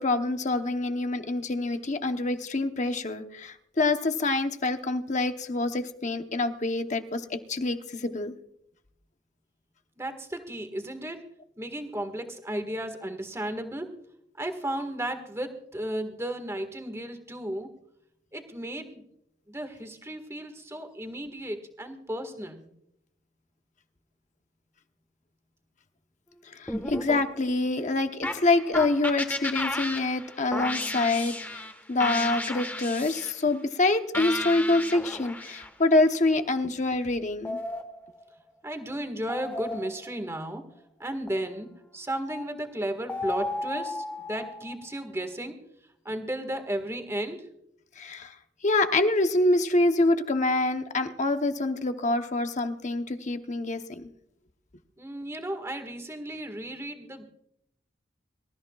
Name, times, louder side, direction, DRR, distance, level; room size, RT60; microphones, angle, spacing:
voice 1, 0.0-8.3 26.6-37.6 48.0-48.3 48.6-54.1, left 2 dB, 40° left, 7 dB, 0.9 m, -26 dB
voice 2, 10.0-11.2 11.6-14.0 14.4-17.7 18.3-19.0 19.5-22.6 38.6-40.6 41.0-45.6 46.0-47.5 55.0-57.2, right 1 dB, 15° right, 6 dB, 1.7 m, -34 dB
sound 1, 26.7-27.7 28.2-31.7 32.0-33.3 34.1-35.7 37.5-38.4 39.3-40.3 41.3-41.5 42.3-42.4 43.1-44.8, left 1 dB, 10° left, 1.4 m, -34 dB
25.0 x 14.0 x 2.4 m, 0.75 s
head